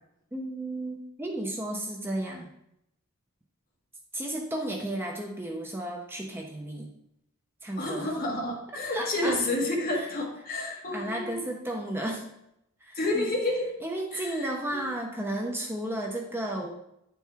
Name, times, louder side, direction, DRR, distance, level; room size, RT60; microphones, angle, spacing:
voice 1, 0.3-2.5 4.1-6.9 7.6-8.1 8.9-9.4 9.9-10.0 10.7-12.2 12.8-13.3 13.8-16.7, right 1 dB, 10° right, 1 dB, 0.7 m, -33 dB
voice 2, 7.8-11.5 12.9-13.7 14.1-14.9, left 2 dB, 45° left, -2 dB, 1.7 m, -30 dB
9.5 x 4.6 x 3.4 m, 0.79 s
head